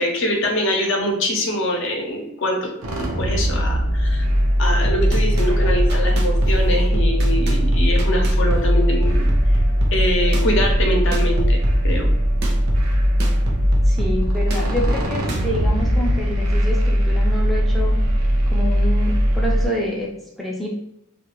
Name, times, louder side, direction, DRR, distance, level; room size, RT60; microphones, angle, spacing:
voice 1, 0.0-4.3 4.6-9.3 9.9-12.1, left 1 dB, 60° left, 2 dB, 0.6 m, -24 dB
sound 1, 2.8-19.7, equal, 85° right, 0.7 m, -19 dB
sound 2, 4.6-16.4, equal, 50° right, 0.5 m, -26 dB
voice 2, 13.9-18.0 18.5-20.1 20.4-20.7, left 1 dB, ahead, -4 dB, 0.4 m, -27 dB
2.3 x 2.2 x 3.0 m, 0.80 s
head